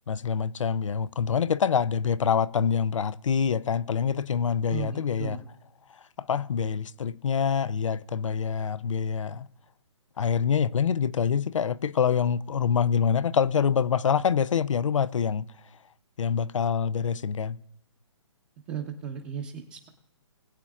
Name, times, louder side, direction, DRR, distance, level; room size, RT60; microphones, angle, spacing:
voice 1, 0.1-5.4 6.2-9.5 10.2-15.5 16.2-17.6, left 7 dB, 80° left, 0.5 m, -25 dB
voice 2, 4.7-5.4 18.7-19.9, right 8 dB, 25° right, 0.9 m, -36 dB
20.5 x 8.8 x 2.4 m
hypercardioid pair, 150°, 16 cm